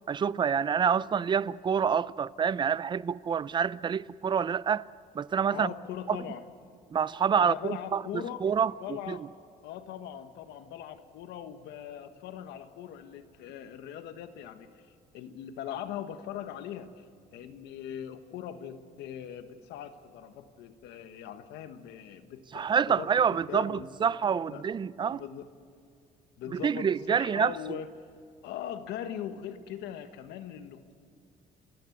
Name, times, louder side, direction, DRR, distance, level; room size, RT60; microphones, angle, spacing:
voice 1, 0.1-4.9 5.1-5.7 6.1-6.2 6.9-8.0 8.4-9.2 22.5-25.2 26.5-27.5, right 7 dB, 30° right, 0.4 m, -27 dB
voice 2, 5.5-6.4 7.4-8.4 8.8-9.2 9.6-14.7 15.1-17.0 17.3-23.9 24.5-24.6 25.1-25.5 26.4-27.9 28.4-30.9, left 10 dB, 85° left, 1.4 m, -40 dB
29.5 x 13.0 x 8.0 m
cardioid pair, 110°, 17 cm